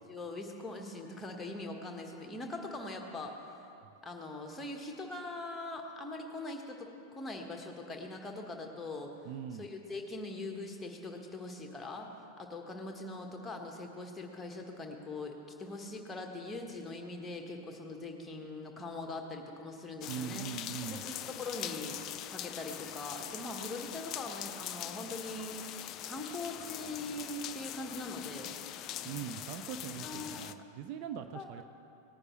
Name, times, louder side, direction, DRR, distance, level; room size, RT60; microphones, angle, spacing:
voice 1, 0.1-3.4 4.0-9.1 9.6-12.1 12.4-20.5 20.8-22.0 22.3-25.6 26.1-28.5 30.0-30.4 31.3-31.6, left 2 dB, 10° left, 2 dB, 1.5 m, -42 dB
voice 2, 9.2-9.7 20.1-21.0 29.0-31.6, right 9 dB, 45° right, 8 dB, 0.5 m, -41 dB
sound 1, 20.0-30.5, left 11 dB, 35° left, 0.4 m, -42 dB
19.0 x 9.5 x 3.2 m, 2.7 s
figure-of-eight pair, 90°, 0 cm